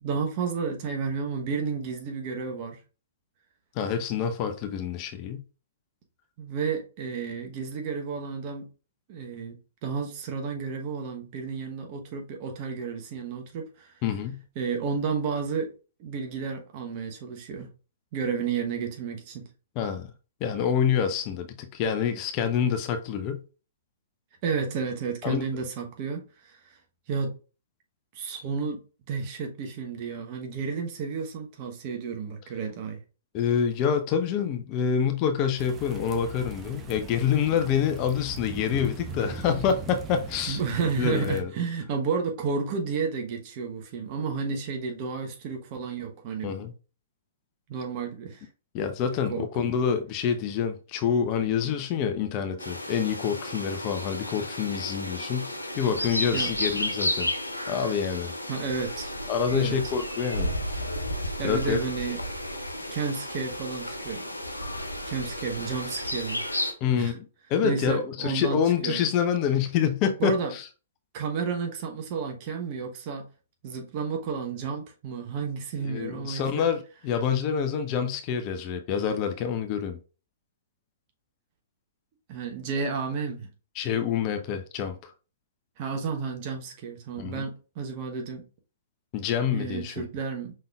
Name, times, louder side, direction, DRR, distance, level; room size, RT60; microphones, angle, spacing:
voice 1, 0.0-2.8 6.4-8.7 9.1-13.9 14.6-15.7 16.0-17.7 18.1-19.4 24.4-26.6 27.1-27.3 28.1-33.0 40.5-46.5 47.7-48.5 49.3-49.5 56.3-56.5 58.5-59.2 59.5-59.8 61.4-62.2 62.9-64.3 65.0-66.4 66.9-67.1 67.6-69.0 70.2-70.5 71.1-73.3 73.6-76.7 82.3-83.5 85.8-88.4 89.5-90.5, right 5 dB, 40° right, 1.0 m, -31 dB
voice 2, 3.7-5.4 14.0-14.4 19.8-20.1 20.4-23.4 25.2-25.4 33.3-41.5 46.4-46.7 48.7-57.3 57.7-58.3 59.3-60.5 61.4-61.8 66.8-67.2 67.5-70.7 75.8-80.0 83.8-85.1 87.2-87.4 89.1-90.1, left 7 dB, 35° left, 0.7 m, -27 dB
sound 1, 35.6-41.4, right 3 dB, 20° right, 0.7 m, -40 dB
sound 2, 52.6-66.7, left 1 dB, 90° left, 0.7 m, -33 dB
5.3 x 3.8 x 2.4 m
figure-of-eight pair, 115°, 0 cm